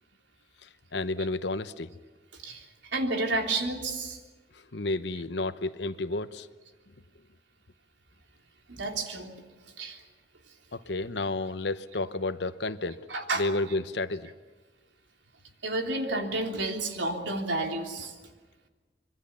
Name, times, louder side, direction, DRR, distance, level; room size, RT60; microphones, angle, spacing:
voice 1, 0.6-1.9 4.5-6.5 10.7-13.0 13.3-14.3, left 2 dB, 70° left, 12 dB, 1.0 m, -31 dB
voice 2, 2.3-4.2 8.7-9.3 9.8-10.0 13.1-13.4 15.6-18.1, right 2 dB, 90° right, 3 dB, 3.2 m, -31 dB
26.0 x 23.0 x 7.2 m, 1.3 s
head